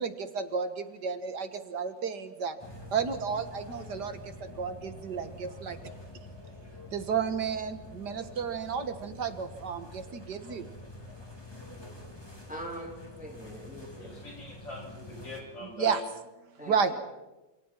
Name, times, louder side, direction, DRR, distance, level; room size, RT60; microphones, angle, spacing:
voice 1, 0.0-2.6 2.9-5.8 6.9-10.7 15.8-16.0 16.7-17.0, right 6 dB, 65° right, 9 dB, 2.0 m, -32 dB
sound 1, 2.6-15.4, left 2 dB, 15° left, 3.4 m, -47 dB
voice 2, 12.5-14.1 16.6-17.0, right 1 dB, 5° right, 0 dB, 3.9 m, -42 dB
voice 3, 14.0-16.1, left 3 dB, 85° left, -2 dB, 8.9 m, -42 dB
28.0 x 28.0 x 4.5 m, 1.0 s
omnidirectional pair, 2.0 m